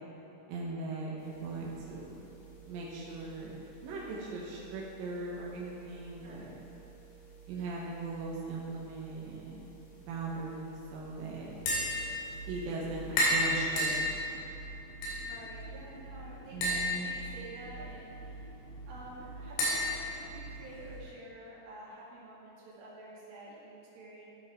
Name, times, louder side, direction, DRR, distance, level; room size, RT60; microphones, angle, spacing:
voice 1, 0.5-2.3 2.7-6.5 7.5-9.7 10.0-11.5 12.5-14.1 16.5-17.1, right 3 dB, 75° right, -4 dB, 2.2 m, -39 dB
sound 1, 1.2-13.3, right 6 dB, 70° left, 4.7 m, -55 dB
voice 2, 6.2-6.6 15.2-18.4 18.8-24.3, right 1 dB, 55° right, -7 dB, 3.5 m, -49 dB
Tap, 11.5-21.0, left 1 dB, 90° left, 5.0 m, -34 dB
14.0 x 6.3 x 4.4 m, 2.9 s
omnidirectional pair, 5.6 m